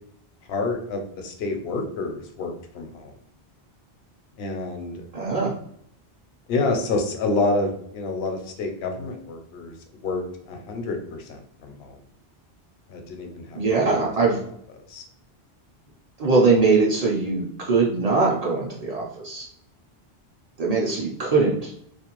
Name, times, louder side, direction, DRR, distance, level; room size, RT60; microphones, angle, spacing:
voice 1, 0.5-3.1 4.4-5.0 6.5-9.7 10.0-11.9 12.9-13.9 14.9-15.0, left 3 dB, 75° left, 4 dB, 0.8 m, -28 dB
voice 2, 5.1-5.5 13.5-14.4 16.2-19.5 20.6-21.7, right 4 dB, 45° right, -4 dB, 0.6 m, -21 dB
2.5 x 2.2 x 2.9 m, 0.67 s
omnidirectional pair, 1.1 m